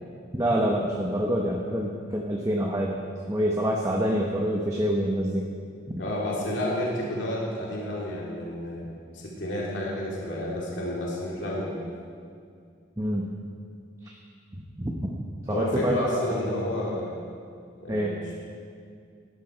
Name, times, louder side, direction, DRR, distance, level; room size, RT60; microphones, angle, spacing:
voice 1, 0.3-3.0 3.3-5.5 13.0-13.3 14.0-14.1 14.8-15.1 15.5-16.4 17.9-18.1, equal, 15° right, -1 dB, 1.0 m, -26 dB
voice 2, 6.0-8.9 9.1-11.8 15.5-17.1 17.8-18.3, left 1 dB, 65° left, -5 dB, 2.9 m, -30 dB
17.5 x 13.0 x 4.5 m, 2.3 s
head